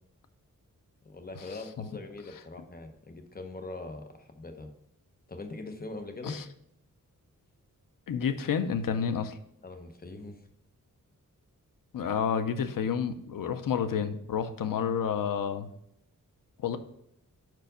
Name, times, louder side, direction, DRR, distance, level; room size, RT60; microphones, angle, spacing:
voice 1, 1.0-4.7 5.3-6.4 9.6-10.4, left 2 dB, 25° left, 6 dB, 0.9 m, -42 dB
voice 2, 8.1-9.4 11.9-15.7 16.6-16.8, left 7 dB, 75° left, 10 dB, 0.6 m, -30 dB
5.0 x 4.6 x 5.0 m, 0.75 s
wide cardioid pair, 95°, 33 cm